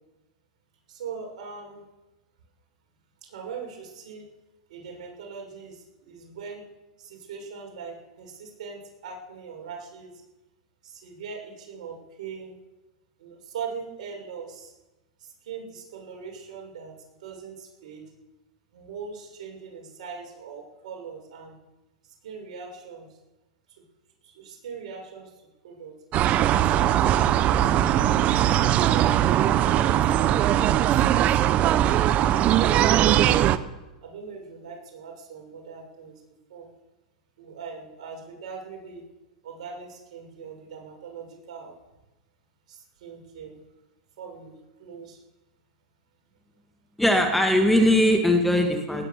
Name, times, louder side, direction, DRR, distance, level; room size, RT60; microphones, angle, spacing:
voice 1, 0.9-1.8 3.2-4.3 4.7-6.6 7.0-10.1 10.8-12.6 13.2-14.7 15.2-16.9 17.2-18.0 18.7-21.5 22.2-23.2 24.2-25.3 25.6-26.0 26.6-27.6 27.8-29.1 29.6-31.4 32.0-33.4 34.0-36.2 36.5-36.7 37.4-39.0 39.4-41.7 42.7-43.6 44.2-45.2, right 5 dB, 75° right, 1 dB, 6.5 m, -41 dB
sound 1, 26.1-33.6, right 11 dB, 35° right, 0.8 m, -20 dB
voice 2, 47.0-49.1, left 1 dB, 5° left, 3 dB, 2.3 m, -20 dB
18.5 x 10.5 x 7.0 m, 1.0 s
hypercardioid pair, 125°, 4 cm